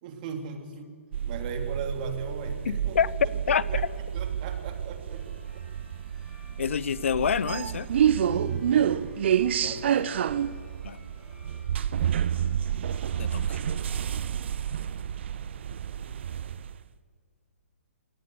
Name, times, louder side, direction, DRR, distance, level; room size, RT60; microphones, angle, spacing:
voice 1, 0.0-0.9 1.3-3.0 3.5-5.7 8.2-9.1 9.6-10.3, right 6 dB, 40° right, 5 dB, 3.0 m, -38 dB
sound 1, 1.1-16.8, right 9 dB, 55° right, 0.7 m, -29 dB
voice 2, 2.7-3.1 3.5-3.8 6.6-7.9 9.6-9.7 10.8-11.0 13.2-13.6, left 7 dB, 65° left, 20 dB, 0.6 m, -27 dB
sound 2, 5.1-16.1, left 1 dB, ahead, 7.5 m, -58 dB
21.5 x 17.5 x 6.9 m, 2.2 s
hypercardioid pair, 135°, 7 cm